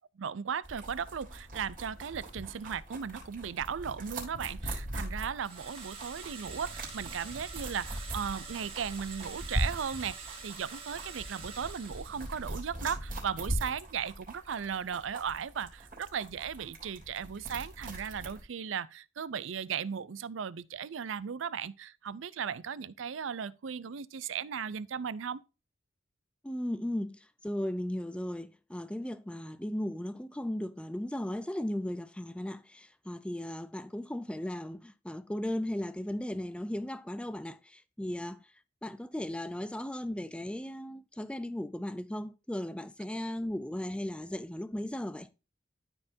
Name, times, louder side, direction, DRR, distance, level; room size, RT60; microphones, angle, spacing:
voice 1, 0.2-25.4, right 7 dB, 85° right, 0.5 m, -36 dB
sound 1, 0.6-18.4, right 1 dB, 45° right, 3.5 m, -40 dB
sound 2, 5.4-12.7, right 5 dB, 30° right, 2.1 m, -46 dB
voice 2, 26.4-38.4 38.8-45.3, left 1 dB, 5° left, 0.4 m, -36 dB
13.0 x 4.4 x 2.6 m
head